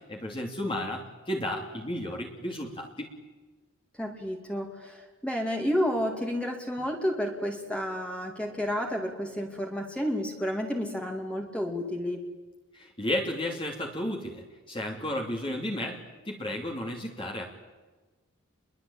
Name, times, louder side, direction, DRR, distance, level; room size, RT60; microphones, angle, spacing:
voice 1, 0.1-3.1 12.7-16.0 16.2-17.5, left 1 dB, 25° left, 0 dB, 2.9 m, -33 dB
voice 2, 3.9-12.2, equal, 5° left, 1 dB, 2.7 m, -31 dB
29.5 x 22.5 x 8.8 m, 1.3 s
head